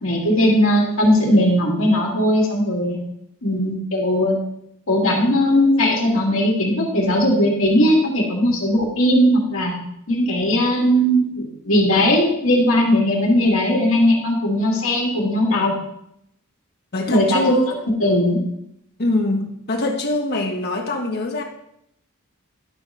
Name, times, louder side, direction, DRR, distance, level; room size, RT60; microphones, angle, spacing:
voice 1, 0.0-3.0 3.4-4.4 4.9-9.7 10.1-15.8 17.1-17.6 18.0-18.4, left 1 dB, 70° left, -2 dB, 2.2 m, -18 dB
voice 2, 16.9-17.7 19.0-21.4, left 1 dB, 50° left, 2 dB, 1.3 m, -23 dB
11.0 x 3.9 x 5.6 m, 0.76 s
head